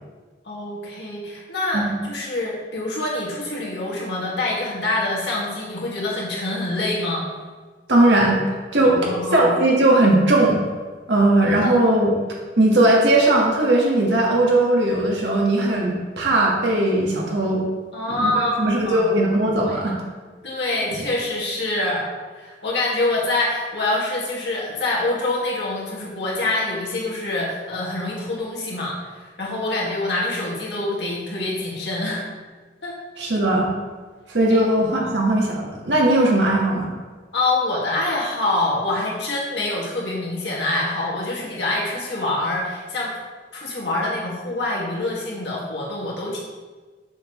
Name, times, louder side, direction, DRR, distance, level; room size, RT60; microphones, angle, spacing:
voice 1, 0.4-7.2 8.8-9.5 11.6-11.7 17.9-19.1 19.5-19.8 20.4-22.1 22.3-29.0 29.4-32.2 32.8-32.9 34.5-34.6 35.0-35.1 37.3-43.1 43.5-46.4, left 2 dB, 65° left, -5 dB, 2.0 m, -25 dB
voice 2, 7.9-8.4 8.7-10.6 11.1-12.1 12.6-17.6 18.2-20.0 33.2-33.7 34.3-36.9, right 1 dB, 70° right, -2 dB, 1.6 m, -18 dB
6.9 x 6.1 x 3.2 m, 1.4 s
head